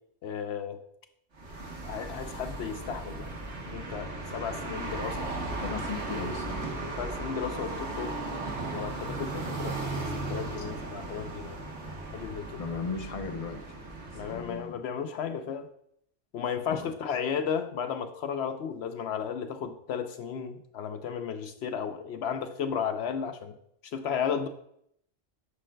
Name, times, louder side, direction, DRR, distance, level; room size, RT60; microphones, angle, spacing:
voice 1, 0.2-0.8 1.8-3.3 3.6-5.3 7.0-8.1 8.6-11.6 12.1-12.6 14.1-15.7 16.3-23.6 23.9-24.5, left 7 dB, 75° left, 8 dB, 0.8 m, -34 dB
sound 1, 1.3-14.6, right 2 dB, 90° right, 1.6 m, -36 dB
voice 2, 5.6-6.7 10.6-10.7 12.6-13.7 14.3-14.8 16.7-16.9, left 4 dB, 40° left, 4 dB, 0.7 m, -36 dB
9.6 x 6.3 x 2.3 m, 0.71 s
omnidirectional pair, 1.1 m